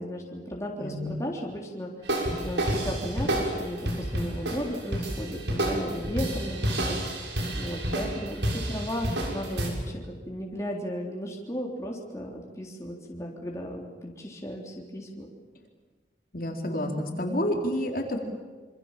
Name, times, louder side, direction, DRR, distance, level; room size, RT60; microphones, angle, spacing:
voice 1, 0.0-1.9 2.4-7.0 7.5-15.3, equal, 15° left, -1 dB, 3.6 m, -35 dB
voice 2, 0.8-1.1 16.3-18.2, left 1 dB, 50° left, 2 dB, 4.1 m, -29 dB
sound 1, 2.1-9.7, right 1 dB, 85° right, 6.8 m, -30 dB
27.0 x 26.5 x 7.5 m, 1.4 s
head